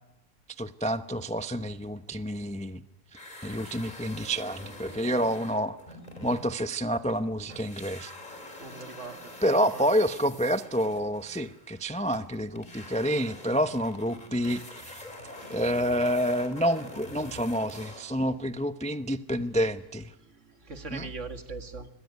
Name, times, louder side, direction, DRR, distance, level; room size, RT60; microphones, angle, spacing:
voice 1, 0.6-2.8 3.4-5.8 6.2-8.1 9.4-15.0 15.5-20.1 20.9-21.1, equal, 10° left, 10 dB, 0.5 m, -28 dB
sound 1, 3.1-7.2 7.5-18.3, left 1 dB, 25° left, 4.1 m, -45 dB
voice 2, 8.6-9.3 9.7-9.8 15.4-15.6 20.2-21.9, right 3 dB, 50° right, 7 dB, 2.1 m, -41 dB
25.5 x 21.5 x 9.5 m, 0.92 s
omnidirectional pair, 1.7 m